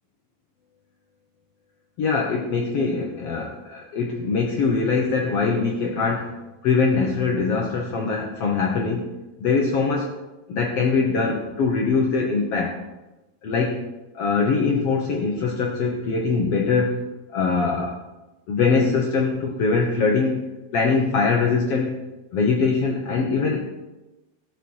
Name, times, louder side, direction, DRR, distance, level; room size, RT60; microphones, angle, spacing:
voice 1, 2.0-6.3 6.6-9.1 9.4-10.1 10.5-12.8 13.4-13.8 14.1-17.0 17.3-18.0 18.5-20.4 20.7-22.0 22.3-23.6, left 4 dB, 80° left, 0 dB, 1.3 m, -22 dB
16.5 x 7.2 x 4.7 m, 1.0 s
omnidirectional pair, 4.6 m